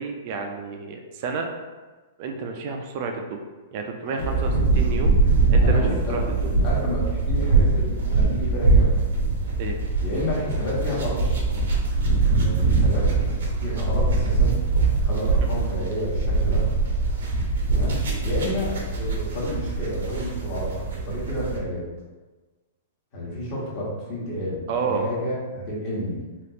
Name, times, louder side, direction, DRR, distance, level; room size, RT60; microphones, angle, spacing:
voice 1, 0.0-1.5 2.2-3.4 3.7-5.2 5.5-6.5 9.6-9.8 24.7-25.1, right 4 dB, 40° right, 4 dB, 0.3 m, -30 dB
voice 2, 4.0-4.6 5.6-9.3 10.0-11.2 12.4-13.3 13.6-14.6 15.0-16.7 17.7-21.8 23.1-26.2, left 1 dB, 35° left, -6 dB, 1.0 m, -30 dB
sound 1, 4.2-21.6, right 3 dB, 90° right, 0.7 m, -22 dB
3.4 x 2.4 x 2.7 m, 1.3 s
hypercardioid pair, 165°, 0 cm